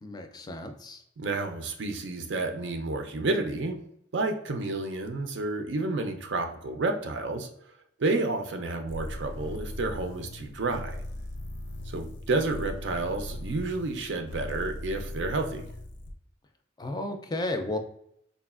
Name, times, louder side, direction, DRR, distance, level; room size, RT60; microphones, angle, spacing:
voice 1, 0.0-1.0 16.8-17.8, left 2 dB, 20° left, 6 dB, 0.3 m, -33 dB
voice 2, 1.2-3.8 4.1-7.5 8.0-11.0 11.9-15.6, right 2 dB, 85° right, 5 dB, 0.5 m, -30 dB
sound 1, 8.9-16.1, left 1 dB, 80° left, 0.5 m, -39 dB
3.9 x 2.4 x 2.4 m, 0.72 s
head